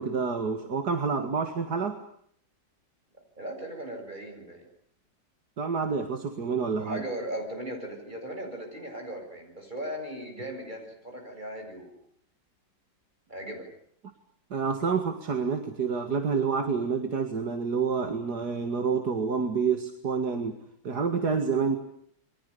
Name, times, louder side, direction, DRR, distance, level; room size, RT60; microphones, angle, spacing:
voice 1, 0.0-2.0 5.6-7.0 14.5-20.6 20.8-21.8, right 5 dB, 60° right, 7 dB, 2.5 m, -28 dB
voice 2, 3.4-4.7 6.8-12.0 13.3-13.7, right 1 dB, 25° right, 3 dB, 8.0 m, -37 dB
29.5 x 23.5 x 6.9 m, 0.67 s
omnidirectional pair, 2.0 m